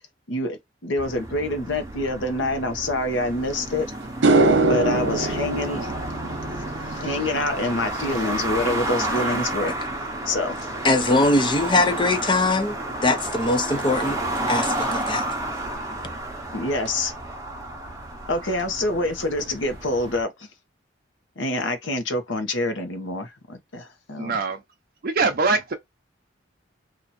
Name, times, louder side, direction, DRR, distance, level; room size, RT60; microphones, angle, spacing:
voice 1, 0.3-3.9 4.7-5.9 6.9-9.7 10.3-10.6 16.5-17.1 18.3-20.5 21.4-24.4, left 2 dB, 80° left, 1.0 m, -26 dB
sound 1, 1.0-20.2, right 1 dB, 15° right, 0.8 m, -31 dB
sound 2, 3.5-3.6 4.0-12.5 12.8-13.3 16.9-17.0 18.6-18.7 19.0-19.1 19.4-19.9, right 2 dB, 75° right, 0.9 m, -26 dB
voice 2, 10.8-12.8 13.0-14.2 14.5-15.2, left 2 dB, 25° left, 0.6 m, -21 dB
voice 3, 24.2-24.6 25.0-25.7, right 4 dB, 50° right, 0.6 m, -23 dB
2.9 x 2.6 x 4.1 m
head